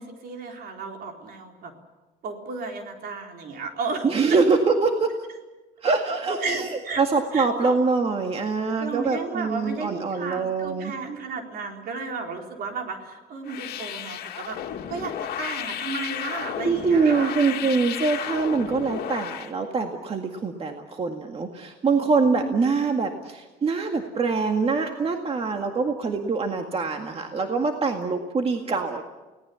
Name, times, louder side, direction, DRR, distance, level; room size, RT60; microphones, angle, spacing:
voice 1, 0.0-1.7 2.2-4.4 6.4-7.0 7.3-7.8 8.8-14.6 14.9-17.8 22.2-22.8, right 4 dB, 65° right, 3 dB, 4.1 m, -34 dB
voice 2, 4.0-5.1 5.8-10.9 16.6-29.0, right 4 dB, 35° right, 4 dB, 2.0 m, -24 dB
sound 1, 13.4-19.5, left 10 dB, 65° left, 2.1 m, -33 dB
30.0 x 18.5 x 7.1 m, 1.2 s
cardioid pair, 110°, 17 cm